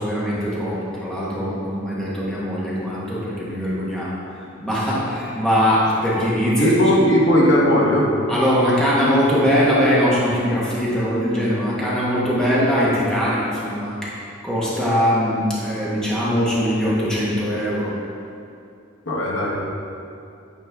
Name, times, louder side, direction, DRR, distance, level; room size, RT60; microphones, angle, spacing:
voice 1, 0.0-6.7 8.3-17.9, equal, 5° left, -8 dB, 1.4 m, -21 dB
voice 2, 6.6-8.1 19.1-19.6, equal, 65° left, -4 dB, 1.2 m, -17 dB
9.2 x 4.2 x 3.6 m, 2.5 s
head